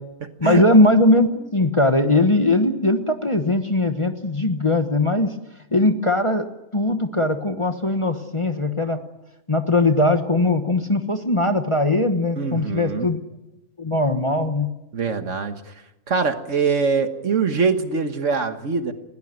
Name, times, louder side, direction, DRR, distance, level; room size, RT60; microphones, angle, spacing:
voice 1, 0.4-5.4 5.7-6.5 6.7-9.0 9.5-13.2 13.8-14.7, left 2 dB, 25° left, 6 dB, 1.1 m, -20 dB
voice 2, 12.4-13.1 14.9-15.7 16.1-18.9, right 5 dB, 55° right, 8 dB, 1.7 m, -23 dB
21.0 x 17.0 x 9.1 m, 0.94 s
omnidirectional pair, 1.5 m